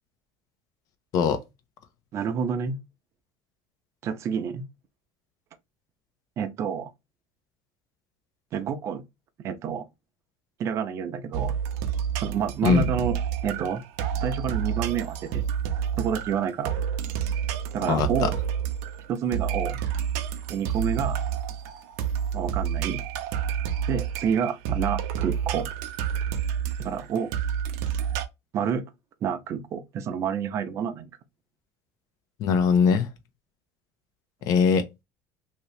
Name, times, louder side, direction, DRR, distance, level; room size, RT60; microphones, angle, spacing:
voice 1, 2.1-2.8 4.0-4.6 6.4-6.9 8.5-9.0 9.4-9.8 10.6-11.5 12.2-13.2 13.4-13.8 14.2-15.4 16.0-16.7 17.7-18.3 19.1-19.8 20.5-21.2 22.3-23.0 23.9-25.7 26.8-27.3 28.5-28.8 29.2-31.1, right 7 dB, 40° right, 0.6 m, -28 dB
sound 1, 11.3-28.3, right 8 dB, 85° right, 0.6 m, -29 dB
voice 2, 17.9-18.3 32.4-33.1 34.5-34.9, left 6 dB, 50° left, 0.8 m, -21 dB
2.9 x 2.8 x 3.2 m
cardioid pair, 140°, 7 cm